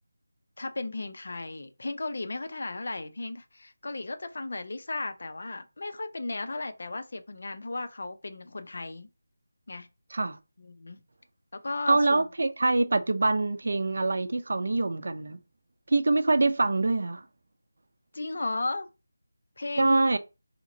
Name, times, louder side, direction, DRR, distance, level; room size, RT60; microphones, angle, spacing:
voice 1, 0.6-9.1 9.7-9.9 10.6-11.0 11.5-12.2 18.1-18.9 19.6-20.0, left 2 dB, 55° left, 0.6 m, -35 dB
voice 2, 11.9-15.4 15.9-17.2 19.8-20.2, right 2 dB, 60° right, 0.5 m, -24 dB
2.9 x 2.4 x 4.0 m
figure-of-eight pair, 165°, 0 cm